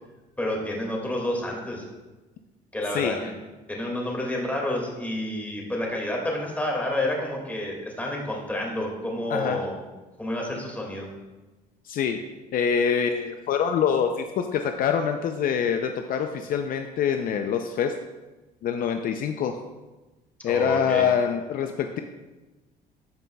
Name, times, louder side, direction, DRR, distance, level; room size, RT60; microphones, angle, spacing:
voice 1, 0.4-1.8 2.7-3.3 3.7-9.8 10.2-11.1 20.5-21.1, left 1 dB, 10° left, -1 dB, 2.0 m, -29 dB
voice 2, 2.9-3.3 9.3-9.6 11.8-12.2 12.5-17.9 18.6-19.6 20.4-22.0, left 7 dB, 55° left, 6 dB, 0.5 m, -25 dB
13.5 x 5.3 x 2.3 m, 1.2 s
cardioid pair, 110°, 17 cm